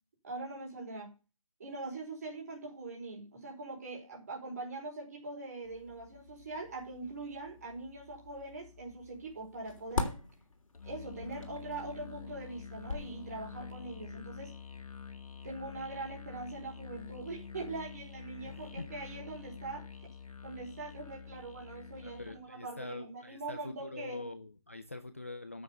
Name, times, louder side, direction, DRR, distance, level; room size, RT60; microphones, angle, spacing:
voice 1, 0.2-1.1 1.6-10.2 10.8-14.5 15.4-20.1 20.4-24.2, right 3 dB, 25° right, 0 dB, 4.7 m, -42 dB
sound 1, 5.6-13.5, left 3 dB, 65° left, 3.1 m, -43 dB
Musical instrument, 10.7-22.5, left 6 dB, 85° left, 2.1 m, -47 dB
voice 2, 22.0-23.6 23.9-25.6, left 2 dB, 25° left, 10 dB, 0.5 m, -44 dB
9.8 x 7.2 x 6.9 m, 0.31 s
hypercardioid pair, 180°, 18 cm